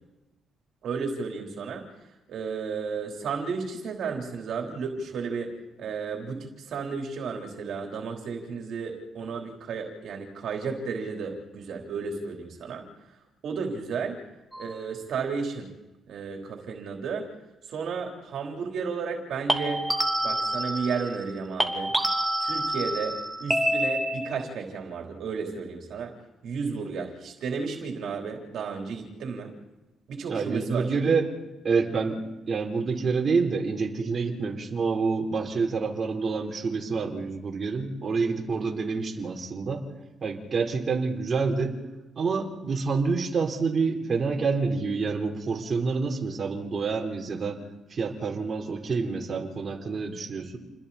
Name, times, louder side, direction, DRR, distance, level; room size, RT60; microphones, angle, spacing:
voice 1, 0.8-1.8 2.3-12.8 13.4-14.2 14.6-15.7 16.1-17.3 17.7-19.9 20.2-21.9 22.4-26.1 26.4-29.5 30.1-30.9, right 5 dB, 70° right, 1 dB, 3.7 m, -33 dB
sound 1, 14.5-14.8 19.5-21.3 21.6-24.5, right 1 dB, 5° right, 3.0 m, -28 dB
voice 2, 30.3-31.3 31.6-32.2 32.5-39.8 40.2-41.8 42.2-47.6 47.9-50.6, right 4 dB, 40° right, 0 dB, 4.0 m, -27 dB
29.5 x 21.5 x 4.3 m, 1.0 s
cardioid pair, 90°, 0 cm